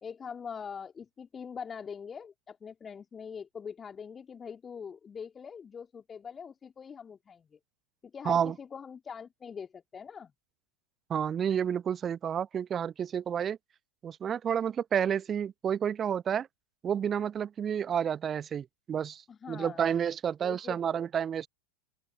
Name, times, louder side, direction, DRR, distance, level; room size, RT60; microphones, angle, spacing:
voice 1, 0.0-7.6 8.0-10.3 19.3-19.9 20.4-21.0, left 6 dB, 20° left, 2.8 m, -43 dB
voice 2, 8.2-8.5 11.1-13.6 14.0-16.5 16.8-19.2 19.5-21.5, right 8 dB, 25° right, 1.0 m, -30 dB
open air
figure-of-eight pair, 90°, 0 cm